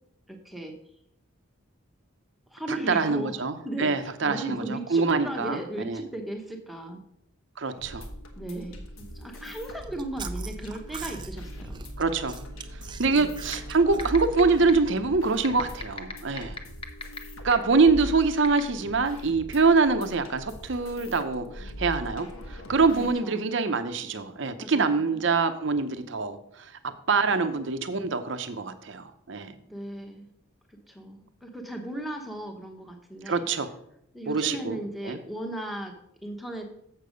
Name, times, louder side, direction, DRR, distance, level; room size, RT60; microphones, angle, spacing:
voice 1, 0.3-0.7 2.5-3.4 3.6-7.0 8.3-11.8 13.1-13.3 23.0-23.5 24.6-25.3 29.6-30.3 30.7-33.5 34.1-36.0 36.2-36.7, right 1 dB, ahead, 2 dB, 1.0 m, -36 dB
voice 2, 2.7-5.6 5.8-6.0 7.6-8.0 12.0-12.4 13.0-16.6 17.4-29.5 33.3-33.7 34.3-34.8 35.0-35.2, right 4 dB, 60° right, 9 dB, 0.7 m, -25 dB
sound 1, 7.8-23.1, equal, 75° left, 1.3 m, -41 dB
Chewing mastication, 9.7-15.0, right 3 dB, 20° right, 0.3 m, -42 dB
sound 2, 13.5-13.6 14.0-14.4 14.7-14.8 15.4-17.2 17.5-17.6 18.4-18.6, left 4 dB, 25° left, 0.7 m, -33 dB
7.3 x 6.7 x 5.1 m, 0.75 s
head